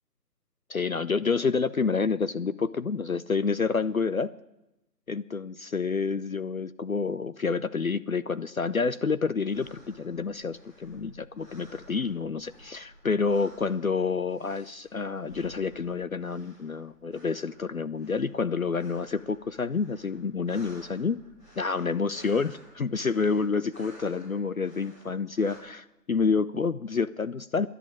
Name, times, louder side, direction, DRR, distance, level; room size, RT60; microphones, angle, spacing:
voice 1, 0.7-4.3 5.1-21.2 21.6-27.7, left 5 dB, 60° left, 15 dB, 0.5 m, -28 dB
sound 1, 9.4-25.6, equal, 30° left, 5.1 m, -53 dB
11.0 x 11.0 x 8.7 m, 0.93 s
figure-of-eight pair, 165°, 50 cm